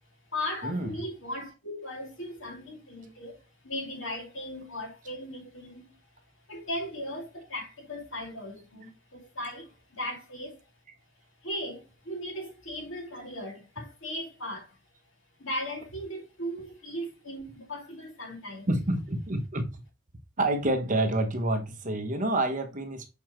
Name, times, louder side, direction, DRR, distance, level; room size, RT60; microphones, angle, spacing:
voice 1, 0.3-10.7 11.4-14.8 15.4-18.7, left 1 dB, 65° left, 2.3 m, -38 dB
voice 2, 18.7-19.8 20.4-23.1, right 1 dB, 40° right, 1.0 m, -28 dB
7.0 x 4.4 x 3.0 m
head